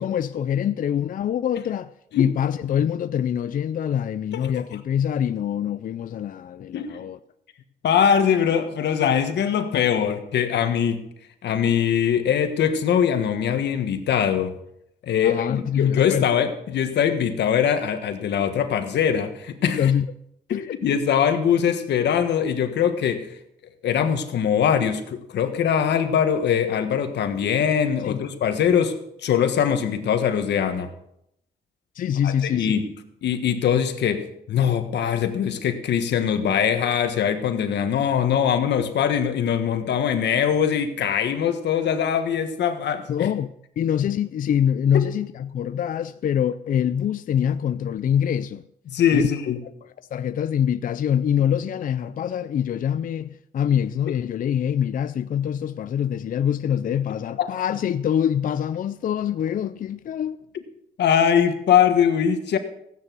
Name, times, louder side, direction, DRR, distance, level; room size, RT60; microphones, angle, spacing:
voice 1, 0.0-1.9 2.2-7.2 15.2-16.2 19.7-20.1 20.5-20.8 28.0-28.2 31.9-32.9 43.1-48.6 49.1-49.2 49.8-60.4, left 9 dB, 55° left, 0.4 m, -24 dB
voice 2, 7.8-11.0 11.4-14.5 15.0-19.8 20.5-23.3 23.8-28.9 29.2-30.9 32.2-32.9 33.2-43.3 44.9-45.0 48.9-49.6 57.4-57.5 61.0-62.6, left 8 dB, 85° left, 1.5 m, -22 dB
15.5 x 9.7 x 6.1 m
cardioid pair, 130°, 17 cm